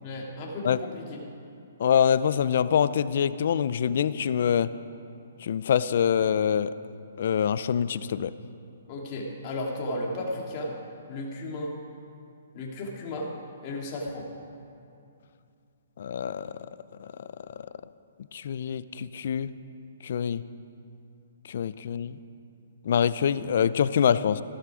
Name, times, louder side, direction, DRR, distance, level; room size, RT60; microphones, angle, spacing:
voice 1, 0.0-1.2 8.9-10.8 11.1-11.8 12.5-13.3 13.6-14.3, left 1 dB, 35° left, -2 dB, 2.7 m, -34 dB
voice 2, 1.8-4.7 5.4-6.7 7.2-8.3 16.0-16.5 17.0-17.1 18.3-19.5 20.0-20.4 21.5-22.2 22.8-24.4, left 8 dB, 60° left, 16 dB, 0.5 m, -25 dB
15.5 x 13.0 x 5.0 m, 2.6 s
hypercardioid pair, 150°, 0 cm